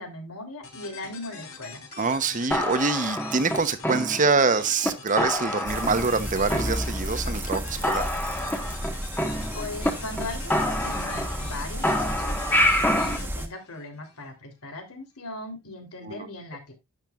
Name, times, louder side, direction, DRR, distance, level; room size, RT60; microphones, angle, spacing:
voice 1, 0.0-1.8 9.5-12.3 12.7-16.7, left 2 dB, 90° left, 3.4 m, -38 dB
sound 1, 0.6-14.3, left 5 dB, 65° left, 3.6 m, -44 dB
voice 2, 2.0-8.1 16.0-16.3, right 4 dB, 35° right, 0.9 m, -25 dB
sound 2, 2.5-4.5 4.8-4.9 5.2-6.2 6.5-7.2 7.5-7.6 7.8-9.9 10.2-10.3 10.5-11.5 11.8-13.2, left 1 dB, 10° left, 1.4 m, -27 dB
sound 3, 5.7-13.5, equal, 10° right, 1.2 m, -33 dB
12.0 x 8.9 x 2.5 m
head